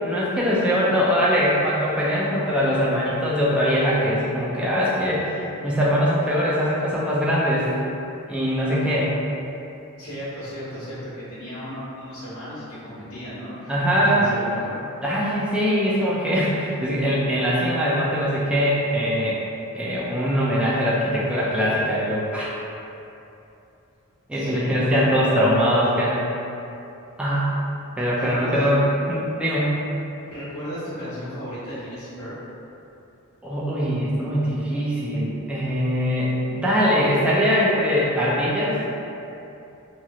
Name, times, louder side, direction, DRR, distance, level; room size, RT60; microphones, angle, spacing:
voice 1, 0.0-7.7 8.3-9.1 13.7-14.3 15.0-19.4 19.7-22.5 24.3-26.2 27.2-27.5 28.0-29.8 33.4-38.8, equal, 5° right, -7 dB, 0.3 m, -22 dB
voice 2, 10.0-14.8 24.3-24.9 28.2-28.7 30.2-32.3, equal, 85° left, -13 dB, 1.0 m, -35 dB
3.0 x 2.7 x 2.3 m, 2.8 s
head